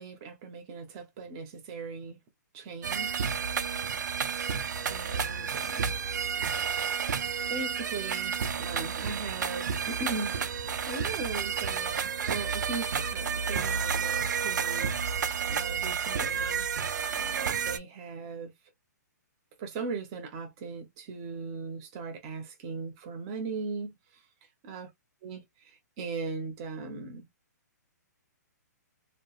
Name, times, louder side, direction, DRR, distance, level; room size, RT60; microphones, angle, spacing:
voice 1, 0.0-2.2 2.5-3.3 4.9-5.9 7.5-14.9 15.3-16.6 17.1-18.5 19.6-23.9 24.6-24.9 25.2-25.4 26.0-27.3, right 4 dB, 15° right, 0.5 m, -38 dB
sound 1, 2.8-17.8, right 6 dB, 80° right, 0.4 m, -31 dB
2.8 x 2.1 x 2.3 m
hypercardioid pair, 180°, 10 cm